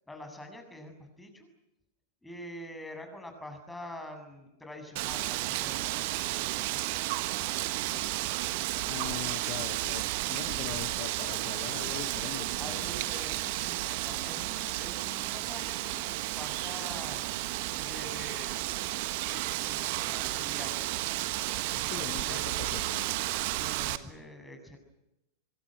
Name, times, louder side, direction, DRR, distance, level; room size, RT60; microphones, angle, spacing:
voice 1, 0.1-1.5 2.2-8.4 8.7-9.0 12.6-17.2 17.7-19.0 19.3-21.1 21.8-22.5 23.6-24.8, left 1 dB, 5° left, 5 dB, 7.2 m, -46 dB
Wind, 5.0-24.0, right 17 dB, 50° right, 1.3 m, -32 dB
voice 2, 8.9-12.9 21.7-23.2, left 17 dB, 45° left, 13 dB, 1.0 m, -42 dB
25.5 x 23.0 x 7.9 m, 0.91 s
figure-of-eight pair, 90°, 0 cm